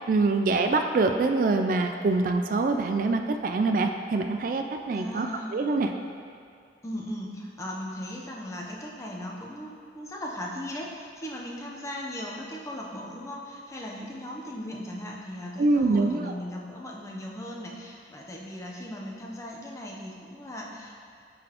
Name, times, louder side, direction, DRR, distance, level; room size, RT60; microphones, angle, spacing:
voice 1, 0.1-5.9 15.6-16.4, right 3 dB, 50° right, 5 dB, 0.3 m, -25 dB
voice 2, 4.9-5.5 6.8-20.9, left 1 dB, 15° left, -2 dB, 0.6 m, -38 dB
9.7 x 4.0 x 2.9 m, 2.3 s
head